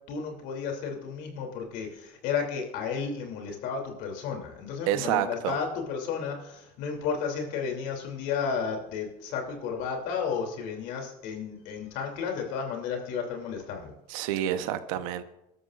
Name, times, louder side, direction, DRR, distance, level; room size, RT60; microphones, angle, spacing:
voice 1, 0.1-13.9, left 6 dB, 75° left, 2 dB, 2.8 m, -33 dB
voice 2, 4.9-5.6 14.1-15.2, right 11 dB, 90° right, 10 dB, 0.9 m, -28 dB
25.5 x 12.5 x 2.5 m, 0.88 s
supercardioid pair, 105°, 17 cm